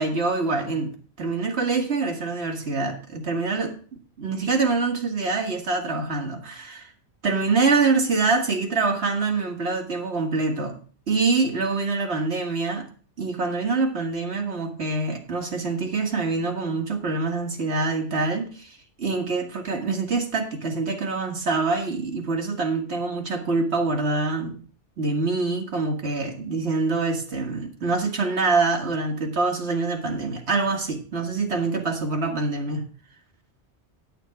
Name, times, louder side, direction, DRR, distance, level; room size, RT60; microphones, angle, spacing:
voice 1, 0.0-3.8 4.2-6.9 7.2-10.8 11.1-12.9 13.2-24.6 25.0-32.8, right 3 dB, 75° right, 4 dB, 2.0 m, -25 dB
9.2 x 8.7 x 4.6 m, 0.42 s
omnidirectional pair, 1.1 m